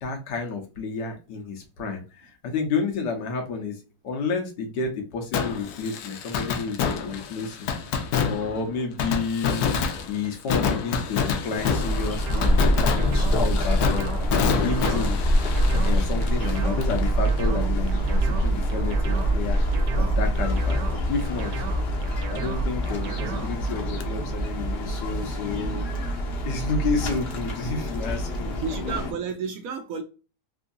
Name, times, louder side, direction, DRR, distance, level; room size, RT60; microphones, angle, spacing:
voice 1, 0.0-3.8 4.0-7.7 8.2-9.7 10.1-14.1 14.5-15.2 15.7-19.6 19.9-21.5 22.2-25.9 26.5-29.1, left 4 dB, 90° left, 1.5 m, -30 dB
Fireworks, 5.3-17.0 17.3-17.4 24.0-24.1, left 6 dB, 70° left, 1.1 m, -28 dB
sound 1, 11.6-29.1, equal, 55° left, 0.7 m, -25 dB
sound 2, 12.2-23.7, right 8 dB, 85° right, 1.2 m, -38 dB
voice 2, 28.6-30.0, right 5 dB, 70° right, 0.8 m, -31 dB
3.6 x 2.6 x 2.4 m
omnidirectional pair, 1.8 m